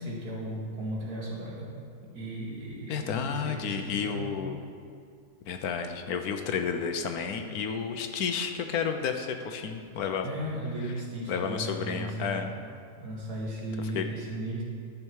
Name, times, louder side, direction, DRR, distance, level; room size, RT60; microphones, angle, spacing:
voice 1, 0.0-1.8 2.1-4.4 10.2-12.5 13.0-14.6, right 1 dB, 70° right, -4 dB, 2.4 m, -36 dB
voice 2, 2.9-4.6 5.5-10.3 11.3-12.5 13.9-14.0, left 6 dB, 75° left, 6 dB, 1.2 m, -31 dB
12.0 x 6.7 x 4.7 m, 2.3 s
omnidirectional pair, 1.7 m